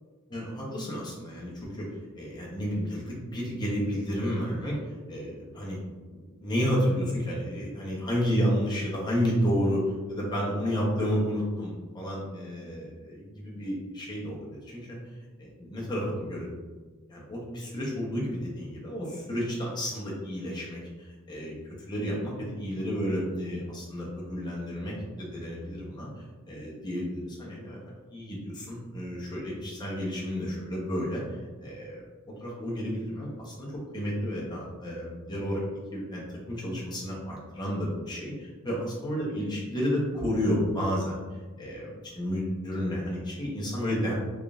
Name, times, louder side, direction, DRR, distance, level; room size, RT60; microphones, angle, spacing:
voice 1, 0.3-1.9 2.2-4.8 5.1-5.8 6.1-15.0 15.4-16.5 17.1-20.8 21.3-21.5 21.9-26.1 26.5-27.8 28.1-31.2 31.6-33.7 33.9-35.6 35.9-41.1 41.6-44.1, equal, 20° left, -5 dB, 0.9 m, -31 dB
3.7 x 3.5 x 2.5 m, 1.3 s
head